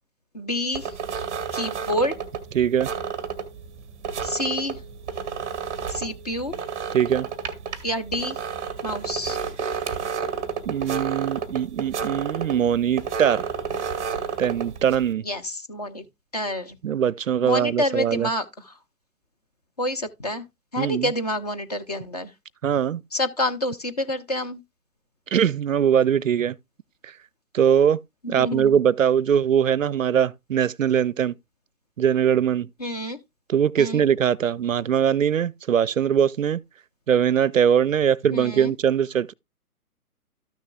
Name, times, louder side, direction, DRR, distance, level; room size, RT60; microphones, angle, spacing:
voice 1, 0.3-0.9 1.5-2.1 4.2-4.8 5.9-6.5 7.8-8.4 8.8-9.4 15.2-16.1 16.3-16.8 17.4-18.8 19.8-20.4 20.7-22.3 23.1-24.6 28.2-28.8 32.8-33.2 33.8-34.0 38.3-38.7, left 1 dB, 30° left, 0.6 m, -28 dB
sound 1, 0.7-15.1, right 6 dB, 10° right, 0.7 m, -31 dB
voice 2, 2.5-2.9 6.9-7.3 10.7-13.5 14.4-15.2 16.8-18.3 20.8-21.1 22.6-23.0 25.3-26.6 27.5-28.0 28.3-31.3 32.0-32.7 33.5-36.6 37.1-39.3, right 8 dB, 60° right, 0.5 m, -21 dB
13.0 x 6.4 x 2.3 m
figure-of-eight pair, 135°, 45 cm